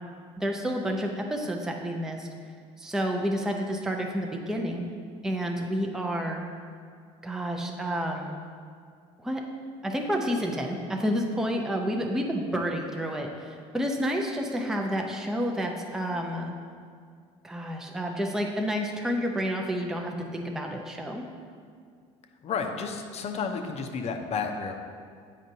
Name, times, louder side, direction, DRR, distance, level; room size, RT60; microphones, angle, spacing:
voice 1, 0.4-2.3 2.8-4.9 5.2-6.4 7.2-8.4 9.2-9.4 9.8-16.5 17.4-21.2, equal, 5° right, 1 dB, 0.6 m, -30 dB
voice 2, 22.4-24.7, left 5 dB, 40° left, 5 dB, 0.6 m, -31 dB
7.5 x 5.0 x 2.7 m, 2.2 s
supercardioid pair, 80°, 16 cm